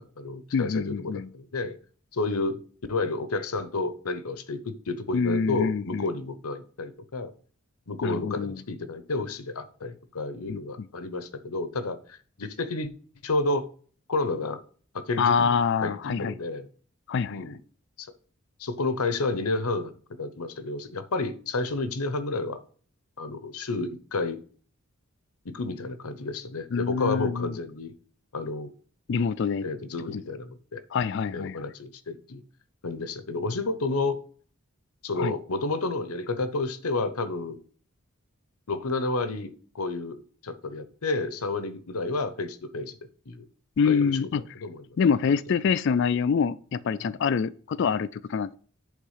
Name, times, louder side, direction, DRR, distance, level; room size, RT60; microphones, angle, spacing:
voice 1, 0.0-1.8 2.1-2.6 2.9-7.3 7.9-12.9 13.2-13.7 14.1-14.6 14.9-16.7 17.3-17.6 18.0-18.1 18.6-19.9 20.2-22.6 23.2-24.4 25.4-28.0 28.3-28.7 29.6-30.8 31.3-32.4 32.8-34.2 35.0-37.6 38.7-43.0 43.3-43.5 43.8-44.8 45.3-45.4 47.0-47.2 47.8-47.9, left 3 dB, 85° left, 0.9 m, -31 dB
voice 2, 0.5-1.3 5.1-6.1 8.0-8.6 10.5-10.9 15.2-16.3 17.1-17.4 26.7-27.6 29.1-29.6 30.1-30.2 30.9-31.6 35.2-35.3 43.8-44.4 45.0-48.6, left 6 dB, 55° left, 0.3 m, -26 dB
8.4 x 3.6 x 5.6 m
head